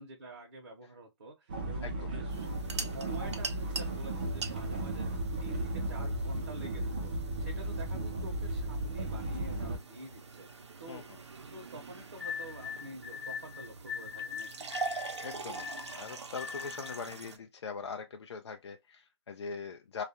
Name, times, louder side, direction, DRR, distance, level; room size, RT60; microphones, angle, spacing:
voice 1, 0.0-7.1 7.4-11.1 11.4-14.7, right 1 dB, 45° right, 0.8 m, -48 dB
sound 1, 1.5-9.8, right 1 dB, 20° right, 0.4 m, -35 dB
sound 2, 2.3-17.4, right 4 dB, 80° right, 0.7 m, -44 dB
voice 2, 10.9-11.2 15.2-20.0, left 5 dB, 70° left, 0.4 m, -42 dB
sound 3, 12.2-17.1, left 7 dB, 45° left, 0.8 m, -41 dB
2.4 x 2.1 x 2.7 m
hypercardioid pair, 170°, 14 cm